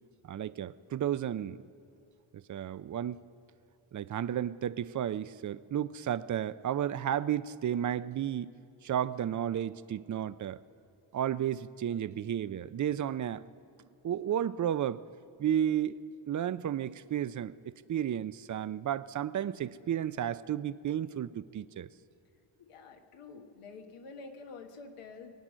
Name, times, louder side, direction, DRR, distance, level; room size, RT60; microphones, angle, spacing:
voice 1, 0.3-1.6 2.5-3.2 3.9-8.5 8.8-10.6 11.1-13.5 14.0-15.1 15.4-16.0 16.3-21.9, right 10 dB, 40° right, 0.5 m, -32 dB
voice 2, 22.6-25.3, left 4 dB, 85° left, 1.5 m, -48 dB
22.5 x 8.8 x 6.2 m
cardioid pair, 80°, 50 cm